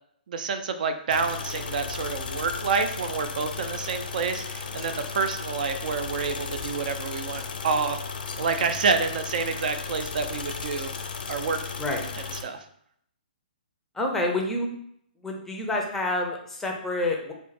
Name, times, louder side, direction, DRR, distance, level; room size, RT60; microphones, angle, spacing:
voice 1, 0.3-8.0 8.4-10.9 11.3-11.6 12.4-12.6, right 5 dB, 60° right, 9 dB, 0.4 m, -28 dB
sound 1, 1.1-12.4, left 5 dB, 75° left, 0.5 m, -35 dB
voice 2, 13.9-14.7 15.2-17.3, left 2 dB, 5° left, 0 dB, 0.5 m, -28 dB
4.4 x 2.1 x 3.1 m, 0.69 s
hypercardioid pair, 145°, 5 cm